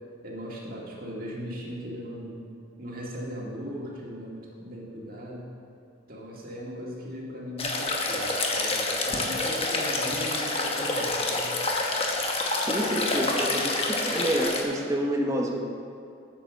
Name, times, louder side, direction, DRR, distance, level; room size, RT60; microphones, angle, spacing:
voice 1, 0.2-2.4 2.8-5.5 6.1-8.3 8.5-11.5, equal, 45° right, -4 dB, 2.1 m, -38 dB
sound 1, 7.6-14.6, left 2 dB, 30° left, 1.1 m, -27 dB
voice 2, 12.7-15.5, equal, 15° right, 0 dB, 1.0 m, -28 dB
8.6 x 7.7 x 6.4 m, 2.5 s
head